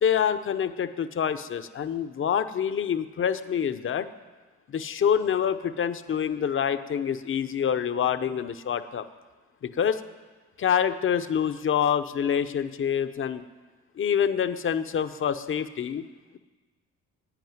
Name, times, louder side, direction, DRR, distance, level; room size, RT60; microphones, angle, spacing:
voice 1, 0.0-4.1 4.7-9.0 9.6-10.0 10.6-13.4 14.0-16.0, left 8 dB, 45° left, 10 dB, 0.8 m, -26 dB
11.0 x 8.6 x 9.5 m, 1.3 s
cardioid pair, 90°, 30 cm